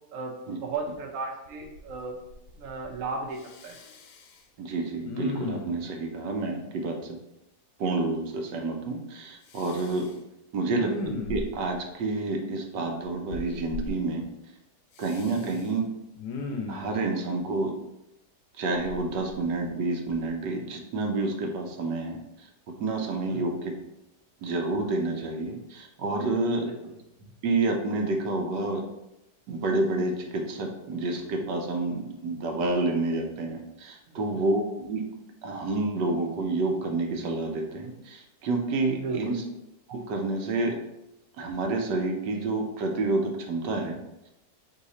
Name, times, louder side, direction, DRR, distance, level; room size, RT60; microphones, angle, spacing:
voice 1, 0.6-2.2 2.6-3.8 15.4-15.6 23.3-23.5 26.6-27.0 34.1-34.2 38.9-39.4, right 3 dB, 60° right, 1 dB, 1.0 m, -35 dB
Respiratory sounds, 0.9-1.0 1.5-2.0 2.3-3.0 3.4-4.4 5.1-5.9 9.5-10.1 10.7-11.7 13.3-13.9 15.0-15.7 16.2-16.9 18.7-19.7 20.1-20.3, left 3 dB, 80° left, 1.2 m, -37 dB
voice 2, 4.6-7.0 7.8-10.1 10.5-14.2 15.0-15.8 16.7-17.7 18.6-22.5 22.8-23.7 24.4-26.7 27.4-28.9 29.5-34.6 34.9-35.0 35.4-39.4 39.9-40.8 41.4-44.0, right 2 dB, 90° right, 2 dB, 1.3 m, -29 dB
4.0 x 2.8 x 4.0 m, 0.89 s
omnidirectional pair, 1.8 m